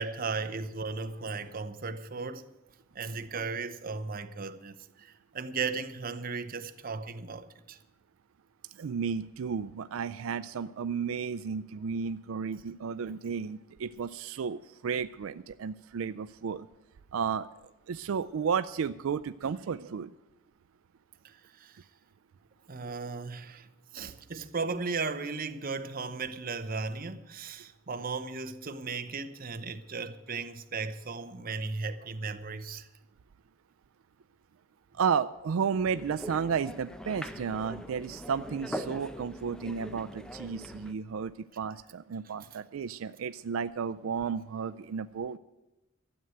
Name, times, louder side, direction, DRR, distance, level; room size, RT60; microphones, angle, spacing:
voice 1, 0.0-2.4 2.9-7.8 21.2-21.8 22.7-23.7 23.9-32.9, right 4 dB, 45° right, 0.8 m, -36 dB
voice 2, 8.8-16.7 17.1-17.5 17.9-20.1 34.9-45.4, right 6 dB, 85° right, 0.4 m, -33 dB
sound 1, 35.8-40.9, equal, 5° left, 0.7 m, -42 dB
12.5 x 7.8 x 9.0 m
head